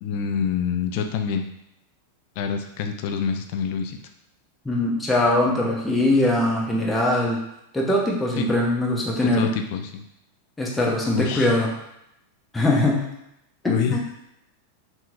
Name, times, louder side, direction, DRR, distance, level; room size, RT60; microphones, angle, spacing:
voice 1, 0.0-1.5 2.4-4.0 8.4-8.5 9.2-10.0 11.1-11.5 13.6-14.0, left 7 dB, 45° left, 5 dB, 0.5 m, -26 dB
voice 2, 4.6-7.4 7.7-9.5 10.6-11.7 12.5-13.0 13.6-14.0, left 1 dB, 10° left, -3 dB, 1.0 m, -21 dB
5.6 x 2.9 x 2.5 m, 0.82 s
figure-of-eight pair, 90°, 0 cm